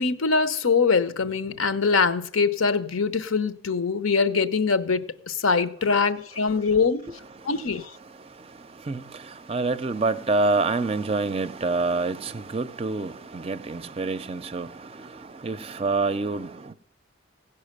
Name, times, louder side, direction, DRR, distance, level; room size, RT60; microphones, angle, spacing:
voice 1, 0.0-7.0 7.4-7.8, left 4 dB, 90° left, 0.8 m, -23 dB
voice 2, 8.8-16.7, right 3 dB, 30° right, 0.4 m, -27 dB
16.5 x 5.5 x 6.6 m
head